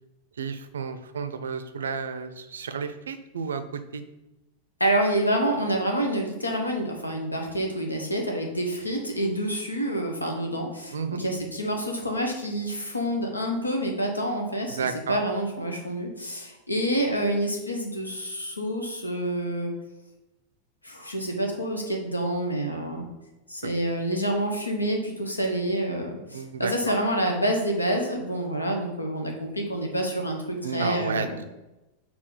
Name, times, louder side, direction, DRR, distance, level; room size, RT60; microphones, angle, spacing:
voice 1, 0.4-3.6 3.9-4.0 10.9-11.2 14.7-15.2 26.3-26.7 30.6-31.3, right 5 dB, 65° right, 11 dB, 0.5 m, -31 dB
voice 2, 4.8-19.7 20.8-23.1 23.5-31.4, right 1 dB, 85° left, 2 dB, 1.2 m, -28 dB
4.6 x 4.2 x 5.6 m, 1.0 s
figure-of-eight pair, 90°, 0 cm